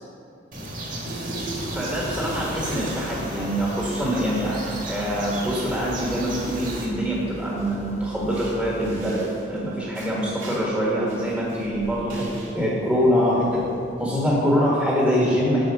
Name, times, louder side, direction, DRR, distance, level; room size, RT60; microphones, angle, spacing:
sound 1, 0.5-6.9, right 1 dB, 45° right, 1.5 m, -34 dB
sound 2, 1.0-14.0, right 2 dB, 85° right, 1.6 m, -41 dB
sound 3, 1.6-9.1, left 1 dB, 35° left, 0.5 m, -41 dB
voice 1, 1.7-4.6 4.9-9.2 9.5-12.3 12.5-13.6 14.0-15.7, equal, ahead, -6 dB, 1.4 m, -24 dB
8.7 x 6.1 x 4.9 m, 2.6 s
head